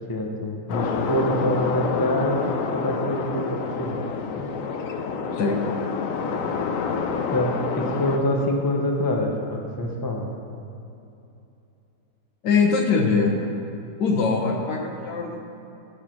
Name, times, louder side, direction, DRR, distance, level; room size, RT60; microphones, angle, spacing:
voice 1, 0.1-2.4 2.7-4.0 4.3-4.5 7.3-10.3, left 1 dB, 20° left, 1 dB, 0.6 m, -25 dB
sound 1, 0.7-8.2, left 5 dB, 60° left, 0.9 m, -28 dB
voice 2, 12.4-13.5 14.0-15.4, left 4 dB, 80° left, 2 dB, 1.7 m, -22 dB
14.5 x 4.9 x 6.0 m, 2.8 s
omnidirectional pair, 1.9 m